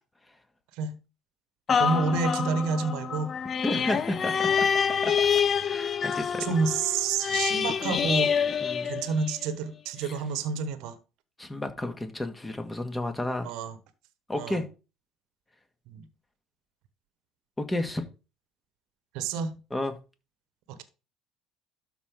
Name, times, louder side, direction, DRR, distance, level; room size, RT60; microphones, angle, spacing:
sound 1, 1.7-9.5 10.0-10.1, left 7 dB, 40° left, 0.6 m, -27 dB
voice 1, 1.8-3.3 3.7-4.0 6.4-8.3 8.8-11.0 13.4-13.8 14.4-14.6 15.9-16.1 19.1-19.5, right 5 dB, 70° right, 1.2 m, -29 dB
voice 2, 3.6-4.7 5.0-5.3 5.7-6.4 8.6-9.0 11.4-13.5 14.3-14.7 17.6-18.0 19.7-19.9, left 1 dB, 15° left, 1.9 m, -31 dB
12.5 x 4.5 x 3.8 m
hypercardioid pair, 65°, 0 cm